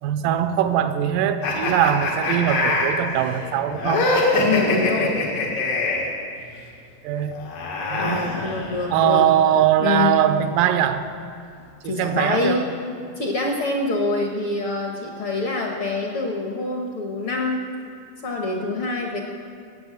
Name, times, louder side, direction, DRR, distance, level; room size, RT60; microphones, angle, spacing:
voice 1, 0.0-4.1 7.0-7.4 7.9-8.3 8.9-11.1 11.8-12.6, right 10 dB, 85° right, 9 dB, 2.4 m, -21 dB
sound 1, 1.4-6.1 7.3-9.0, left 2 dB, 80° left, 3.7 m, -23 dB
voice 2, 4.4-5.2 8.0-9.2 9.8-10.2 11.8-12.7 13.2-17.7 18.2-19.2, left 3 dB, 60° left, 0 dB, 1.6 m, -25 dB
14.0 x 8.5 x 8.7 m, 2.4 s
omnidirectional pair, 3.8 m